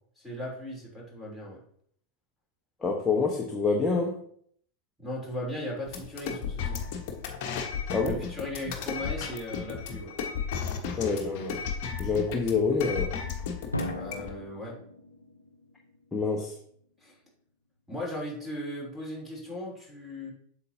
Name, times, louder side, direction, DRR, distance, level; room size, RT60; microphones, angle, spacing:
voice 1, 0.2-1.6 5.0-6.8 8.0-10.1 14.0-14.7 17.0-17.2 17.9-20.3, left 1 dB, ahead, -4 dB, 3.3 m, -37 dB
voice 2, 2.8-4.2 7.9-8.2 11.0-11.6 12.0-13.1 16.1-16.5, left 4 dB, 15° left, 0 dB, 1.1 m, -27 dB
sound 1, 5.9-14.3, left 6 dB, 45° left, 1.2 m, -34 dB
Drum, 13.7-16.4, left 1 dB, 80° left, 0.7 m, -38 dB
8.1 x 6.9 x 2.8 m, 0.63 s
figure-of-eight pair, 90°, 0 cm